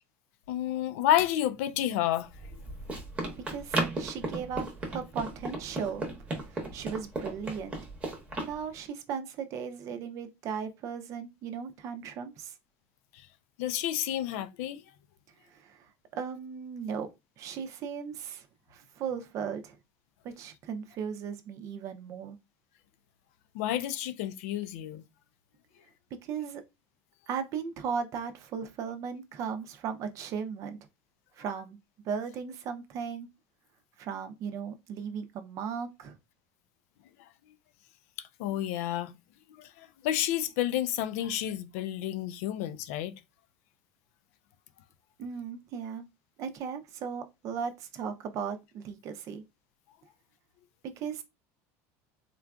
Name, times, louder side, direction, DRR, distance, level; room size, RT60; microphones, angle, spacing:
voice 1, 0.5-2.3 13.6-14.8 23.5-25.0 38.4-39.1 39.8-43.1, left 12 dB, 80° left, 0.3 m, -30 dB
Run, 2.3-8.5, right 2 dB, 15° right, 0.8 m, -35 dB
voice 2, 3.5-6.1 6.7-7.8 8.4-12.5 15.5-15.9 16.1-17.1 17.4-18.5 18.7-19.8 20.2-22.4 26.2-26.6 27.3-30.8 31.4-31.8 32.0-33.3 34.0-36.2 45.2-46.0 46.4-49.4 51.0-51.2, right 6 dB, 45° right, 0.5 m, -36 dB
3.7 x 2.4 x 2.2 m
cardioid pair, 150°, 8 cm